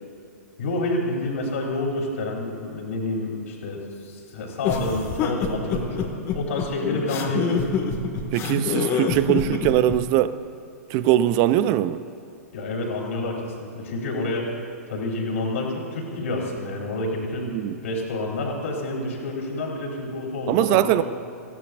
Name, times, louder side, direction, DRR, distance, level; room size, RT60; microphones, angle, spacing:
voice 1, 0.6-7.7 12.5-14.6 14.9-17.5 17.8-21.0, left 2 dB, 60° left, -1 dB, 3.9 m, -28 dB
sound 1, 4.6-10.0, left 6 dB, 35° left, 1.9 m, -26 dB
voice 2, 8.3-10.3 10.9-12.0 17.5-17.8 20.5-21.0, right 13 dB, 40° right, 14 dB, 0.6 m, -21 dB
27.0 x 15.5 x 2.6 m, 2.7 s
figure-of-eight pair, 110°, 8 cm